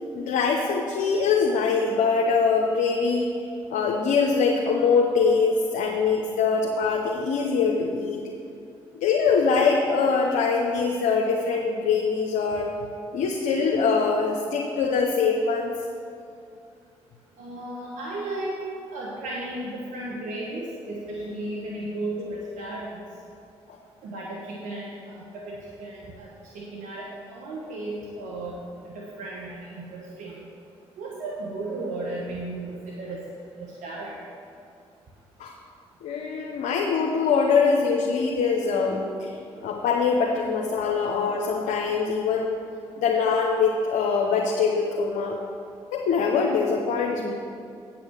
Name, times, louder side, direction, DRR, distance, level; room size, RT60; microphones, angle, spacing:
voice 1, 0.1-3.3 3.7-8.2 8.9-12.7 13.1-15.7 35.4-35.5 36.0-39.3 39.6-42.6 43.0-45.4 45.9-47.3, left 5 dB, 80° left, 0 dB, 0.9 m, -23 dB
voice 2, 17.4-18.6 18.9-23.0 24.0-26.3 26.5-28.6 28.9-30.3 31.0-33.2 33.6-34.2, right 2 dB, 80° right, -4 dB, 1.2 m, -34 dB
8.8 x 6.0 x 7.3 m, 2.5 s
supercardioid pair, 50°, 13 cm